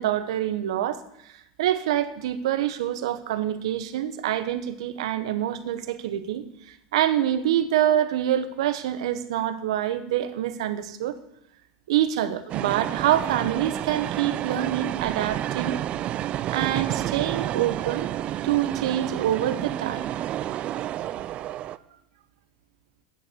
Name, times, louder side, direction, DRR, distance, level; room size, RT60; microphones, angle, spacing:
voice 1, 0.0-1.3 1.6-11.2 11.9-15.8 16.5-18.1 18.4-20.1, right 11 dB, 85° right, 11 dB, 1.0 m, -26 dB
sound 1, 12.5-21.8, right 12 dB, 40° right, 0.4 m, -30 dB
9.2 x 6.8 x 6.7 m, 0.78 s
supercardioid pair, 120°, 3 cm